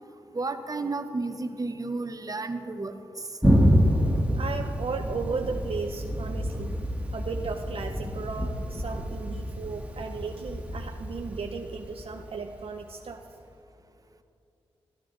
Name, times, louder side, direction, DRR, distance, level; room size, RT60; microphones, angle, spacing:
voice 1, 0.3-3.0, right 3 dB, 35° right, 8 dB, 0.8 m, -32 dB
Thunder, 3.4-12.8, equal, 10° right, 1.7 m, -27 dB
voice 2, 4.4-6.8 7.1-13.2, right 4 dB, 60° right, 4 dB, 0.6 m, -35 dB
13.0 x 10.0 x 3.9 m, 2.6 s
supercardioid pair, 40°, 11 cm